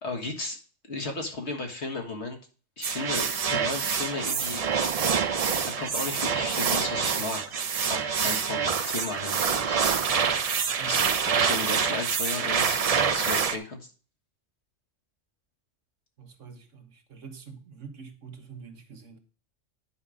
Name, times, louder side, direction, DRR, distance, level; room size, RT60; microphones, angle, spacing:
voice 1, 0.0-0.6 0.9-2.4 2.8-4.6 5.6-7.6 7.9-9.8 10.8-12.9 13.1-13.8, left 2 dB, 65° left, 1.9 m, -34 dB
sound 1, 2.8-13.6, right 6 dB, 45° right, 0.5 m, -26 dB
voice 2, 16.2-19.2, right 6 dB, 85° right, 1.6 m, -45 dB
9.7 x 5.6 x 5.0 m
omnidirectional pair, 1.3 m